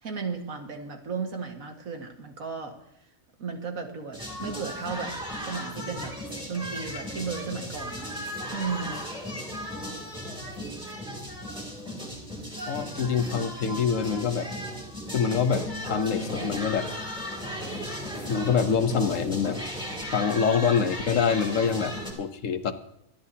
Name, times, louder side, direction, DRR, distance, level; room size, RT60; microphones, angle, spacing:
voice 1, 0.0-2.8 3.4-6.2 6.5-8.2 8.5-9.0, right 5 dB, 90° right, 3 dB, 2.2 m, -35 dB
sound 1, 4.1-22.1, equal, 5° right, 2.8 m, -36 dB
voice 2, 12.7-14.5 15.1-16.9 18.3-19.6 20.1-22.7, left 6 dB, 70° left, 10 dB, 1.3 m, -25 dB
25.0 x 10.5 x 2.8 m, 0.79 s
omnidirectional pair, 1.4 m